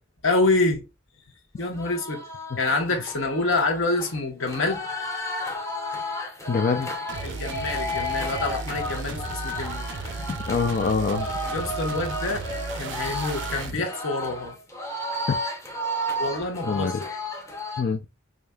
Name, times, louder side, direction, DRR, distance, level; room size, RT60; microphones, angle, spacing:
voice 1, 0.2-0.8 1.6-2.2 2.6-4.8 7.2-9.8 11.5-12.4 12.7-14.5 16.2-17.2, left 2 dB, 75° left, 1.2 m, -26 dB
sound 1, 1.7-17.8, left 1 dB, 15° left, 0.7 m, -33 dB
voice 2, 6.5-6.9 10.3-11.3 15.3-15.4 16.6-17.0 17.8-18.0, left 5 dB, 45° left, 0.4 m, -25 dB
sound 2, 7.1-13.8, right 4 dB, 60° right, 0.5 m, -35 dB
4.9 x 2.7 x 2.3 m
head